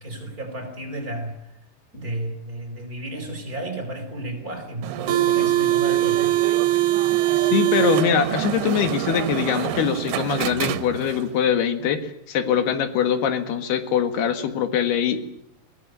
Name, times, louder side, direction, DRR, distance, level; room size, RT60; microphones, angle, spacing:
voice 1, 0.0-1.4 1.9-6.3, right 1 dB, 20° right, 6 dB, 4.6 m, -33 dB
sound 1, 4.8-11.3, right 14 dB, 80° right, 3.0 m, -23 dB
voice 2, 7.4-15.2, left 7 dB, 80° left, 10 dB, 3.7 m, -23 dB
22.5 x 17.0 x 9.6 m, 0.74 s
omnidirectional pair, 4.5 m